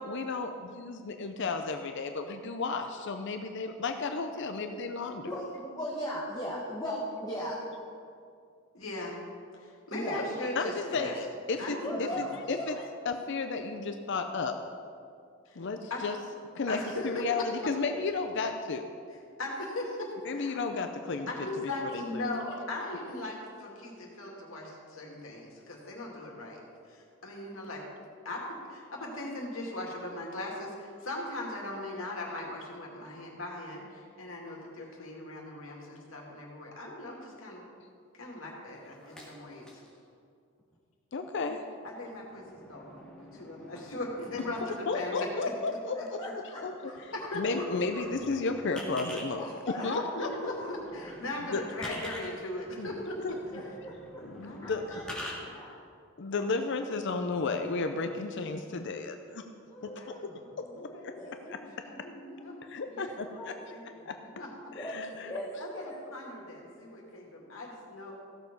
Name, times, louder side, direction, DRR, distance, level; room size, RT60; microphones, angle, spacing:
voice 1, 0.0-5.3 10.6-12.8 13.0-14.6 15.6-16.2 16.6-16.8 17.0-18.9 20.3-21.3 21.6-22.2 41.1-41.7 44.9-46.0 46.6-50.3 51.4-51.6 52.8-52.9 53.2-53.6 54.2-54.9 56.2-59.4 59.8-60.3 60.6-61.1 61.5-61.8 62.7-63.5 64.1-64.2 64.8-65.3, left 4 dB, 60° left, 6 dB, 0.6 m, -33 dB
voice 2, 5.2-7.6 9.9-10.2 11.8-12.9 45.9-46.9 47.5-47.6 47.9-48.0 49.4-49.8 50.5-50.7 50.9-51.1 53.5-55.0 55.5-55.8 59.7-60.5 61.1-61.5 63.4-63.5 64.7-65.0 65.2-66.0, equal, 20° left, -5 dB, 1.4 m, -38 dB
voice 3, 8.7-9.2 9.5-11.1 11.6-12.2 15.5-15.6 15.9-16.0 16.7-17.3 19.4-20.6 21.3-26.6 26.9-27.8 28.2-37.6 38.1-39.8 41.5-41.6 41.8-42.4 42.7-45.3 47.1-47.6 49.7-53.2 54.4-54.8 55.3-55.7 60.0-60.1 60.7-62.6 62.9-64.5 65.6-68.1, left 2 dB, 80° left, -1 dB, 2.4 m, -39 dB
sound 1, 38.7-40.0 40.6-40.8 41.7-44.9 46.6-46.7 46.9-49.3 50.0-55.3, equal, 5° left, 2.0 m, -47 dB
15.5 x 6.9 x 5.3 m, 2.3 s
head